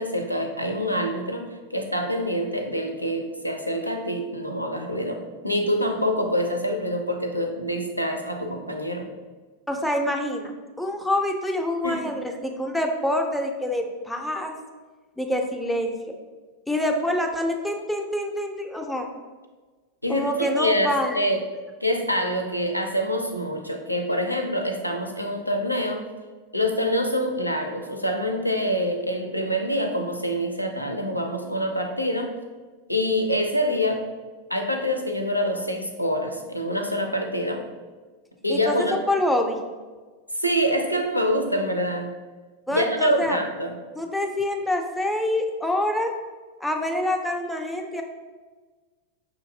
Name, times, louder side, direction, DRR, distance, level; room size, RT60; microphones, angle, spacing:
voice 1, 0.0-9.1 11.8-12.0 20.0-21.4 21.8-26.0 26.5-32.4 32.9-34.0 34.5-37.6 38.4-39.0 40.3-42.1 42.7-43.7, equal, 90° left, 3 dB, 0.4 m, -26 dB
voice 2, 9.7-10.5 10.8-14.5 15.2-16.1 16.7-19.1 20.1-21.2 38.5-38.7 39.1-39.6 42.7-43.4 44.0-46.1 46.6-48.0, left 1 dB, 5° left, 3 dB, 0.5 m, -26 dB
5.6 x 2.6 x 2.7 m, 1.4 s
figure-of-eight pair, 90°, 0 cm